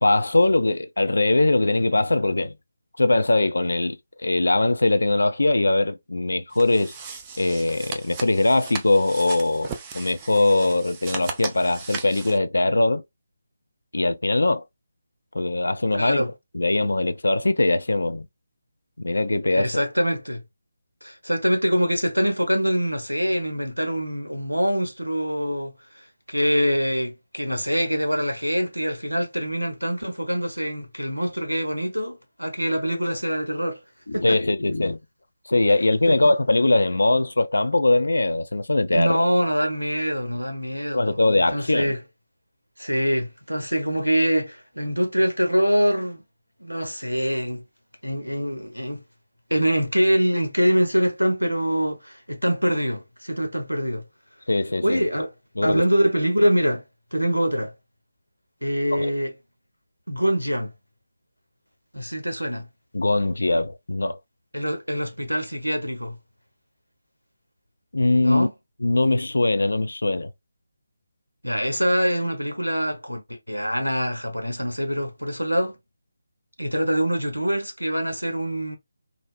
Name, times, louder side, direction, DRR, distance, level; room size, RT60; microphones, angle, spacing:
voice 1, 0.0-2.5 3.0-6.9 7.4-13.0 13.9-14.6 15.3-16.2 16.5-18.3 19.0-19.7 34.1-35.0 35.5-39.3 40.9-41.9 54.5-55.0 55.6-55.8 58.9-59.1 62.9-64.2 67.9-68.5 68.8-70.3, left 2 dB, 65° left, 0.4 m, -21 dB
sound 1, 6.5-12.4, right 5 dB, 20° right, 0.4 m, -37 dB
voice 2, 15.9-16.3 19.5-20.4 21.0-25.7 26.3-33.8 34.1-34.4 36.1-36.3 38.9-41.2 41.5-42.0 42.8-46.2 46.6-47.6 48.0-49.0 49.5-54.0 54.8-55.3 55.6-56.8 57.1-57.7 58.6-59.3 60.1-60.7 61.9-62.7 64.5-66.2 68.2-68.5 71.4-75.8 76.6-78.8, equal, 90° right, 0.9 m, -24 dB
3.8 x 2.0 x 2.3 m
figure-of-eight pair, 150°, 0 cm